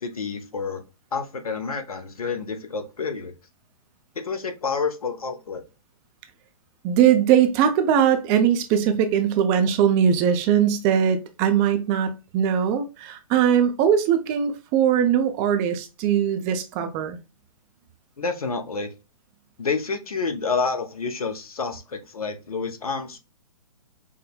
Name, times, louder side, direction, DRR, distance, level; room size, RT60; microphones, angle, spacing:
voice 1, 0.0-0.8 1.1-3.3 4.2-5.6 18.2-18.9 19.6-23.2, left 4 dB, 80° left, 0.7 m, -29 dB
voice 2, 6.8-17.2, right 8 dB, 25° right, 0.4 m, -20 dB
4.8 x 2.1 x 2.2 m
figure-of-eight pair, 120°, 19 cm